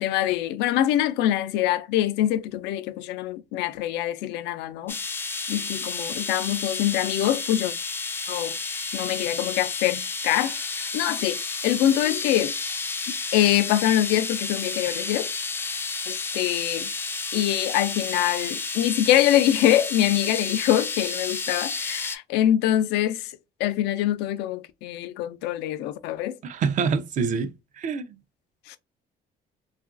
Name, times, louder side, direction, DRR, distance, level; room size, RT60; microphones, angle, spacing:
voice 1, 0.0-5.0 5.5-7.7 8.3-8.5 8.9-12.5 13.1-15.3 16.1-16.9 17.3-23.3 23.6-26.4 28.7-28.8, left 12 dB, 90° left, 0.4 m, -24 dB
sound 1, 4.9-22.2, left 4 dB, 15° left, 0.3 m, -31 dB
voice 2, 26.4-28.2, right 5 dB, 50° right, 0.4 m, -26 dB
2.9 x 2.4 x 2.3 m
cardioid pair, 110°, 17 cm